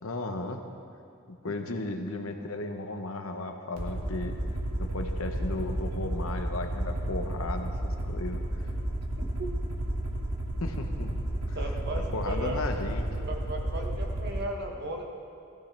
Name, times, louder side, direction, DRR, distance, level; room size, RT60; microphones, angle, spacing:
voice 1, 0.0-0.6 1.3-4.4 4.8-8.4 10.6-11.1 11.5-11.6 12.1-13.1, left 2 dB, 70° left, 5 dB, 1.0 m, -35 dB
Aircraft, 3.8-14.4, right 1 dB, 85° right, 2.0 m, -32 dB
voice 2, 11.5-12.7 13.2-15.0, right 1 dB, 50° right, 1 dB, 1.5 m, -36 dB
16.5 x 14.0 x 3.4 m, 2.5 s
head